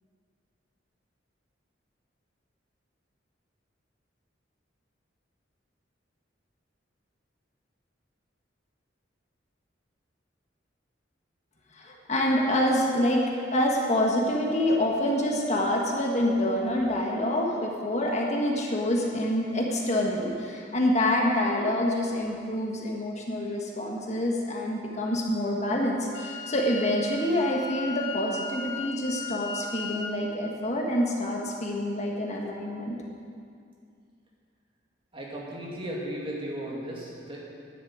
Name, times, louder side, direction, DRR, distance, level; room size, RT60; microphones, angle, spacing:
voice 1, 11.7-13.2 13.5-33.0, left 1 dB, 35° left, -1 dB, 1.5 m, -26 dB
Wind instrument woodwind instrument, 26.1-30.1, left 4 dB, 80° left, 1.4 m, -37 dB
voice 2, 35.1-37.4, right 1 dB, 30° right, -4 dB, 2.4 m, -35 dB
10.5 x 8.6 x 8.8 m, 2.3 s
head